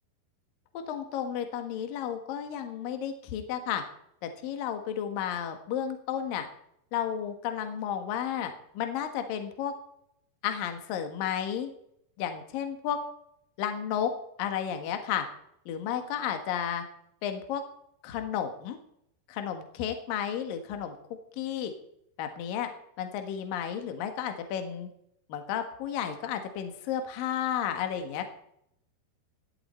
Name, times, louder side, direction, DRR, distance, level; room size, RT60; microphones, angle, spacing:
voice 1, 0.9-3.8 4.2-6.5 6.9-9.7 10.4-11.7 12.2-13.0 13.6-14.1 14.4-15.2 15.7-16.8 17.2-17.6 18.0-18.8 19.3-20.9 21.4-21.7 22.2-22.7 23.0-24.9 25.3-28.3, left 9 dB, 65° left, 6 dB, 2.9 m, -32 dB
17.5 x 12.0 x 4.4 m, 0.72 s
omnidirectional pair, 4.9 m